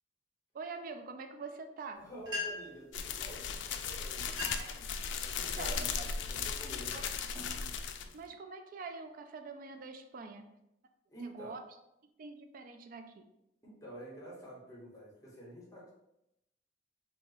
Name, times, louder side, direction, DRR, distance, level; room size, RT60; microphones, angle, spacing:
voice 1, 0.5-2.0 4.6-4.9 5.4-6.1 6.9-7.0 8.1-10.6 11.2-11.6 12.2-13.3, right 4 dB, 50° right, 7 dB, 0.4 m, -45 dB
voice 2, 2.0-4.5 5.2-7.4 11.1-11.6 13.6-15.9, equal, 20° left, -5 dB, 1.1 m, -48 dB
sound 1, 2.0-2.8 3.7-3.9 4.2-4.8 5.3-5.7 6.3-6.5 7.1-8.3, left 3 dB, 25° right, 1.1 m, -41 dB
sound 2, 2.9-8.1, left 6 dB, 90° left, 0.3 m, -37 dB
2.8 x 2.3 x 3.9 m, 0.85 s
head